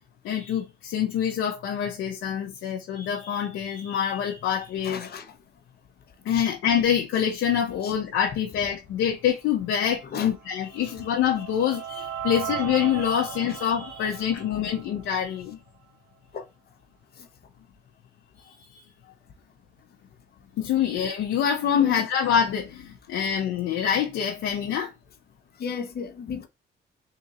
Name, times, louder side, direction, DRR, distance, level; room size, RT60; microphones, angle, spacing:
voice 1, 0.2-5.1 6.2-15.6 18.7-18.8 20.6-24.9, left 9 dB, 85° left, 0.8 m, -26 dB
voice 2, 4.8-5.3 6.3-6.4 7.8-7.9 10.1-10.3 16.3-16.4 17.2-17.3 21.7-22.0 25.6-26.5, left 6 dB, 50° left, 1.0 m, -34 dB
sound 1, 10.4-15.5, right 9 dB, 85° right, 1.0 m, -37 dB
3.8 x 2.7 x 4.1 m
cardioid pair, 90°, 20 cm